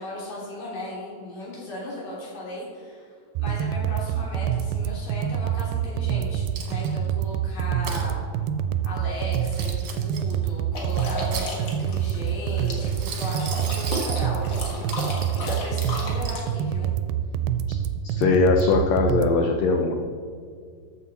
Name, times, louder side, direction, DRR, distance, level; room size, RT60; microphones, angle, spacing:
voice 1, 0.0-8.2 8.8-14.9 15.3-16.9, left 1 dB, 70° left, -6 dB, 4.6 m, -36 dB
sound 1, 3.3-19.3, right 9 dB, 90° right, 2.3 m, -26 dB
Coin (dropping), 6.5-7.1 7.6-8.1 9.2-10.3 11.0-11.9 12.8-14.3 14.9-15.4 15.8-16.4, right 6 dB, 60° right, 2.0 m, -37 dB
sound 2, 10.7-16.4, left 1 dB, 45° left, 1.6 m, -33 dB
voice 2, 18.0-19.9, left 4 dB, 90° left, 3 dB, 1.5 m, -20 dB
13.0 x 7.5 x 4.1 m, 2.1 s
omnidirectional pair, 4.0 m